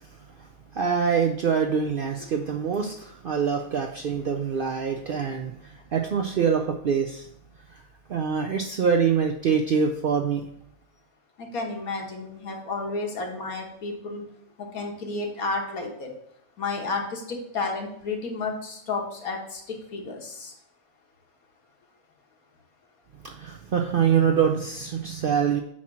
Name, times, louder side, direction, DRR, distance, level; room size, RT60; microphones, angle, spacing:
voice 1, 0.7-7.3 7.7-7.8 8.1-10.4 23.2-25.6, right 6 dB, 65° right, 3 dB, 0.5 m, -25 dB
voice 2, 11.4-14.2 14.6-16.1 16.6-20.5, left 3 dB, 85° left, 1 dB, 1.7 m, -32 dB
8.5 x 2.9 x 6.0 m, 0.73 s
omnidirectional pair, 1.5 m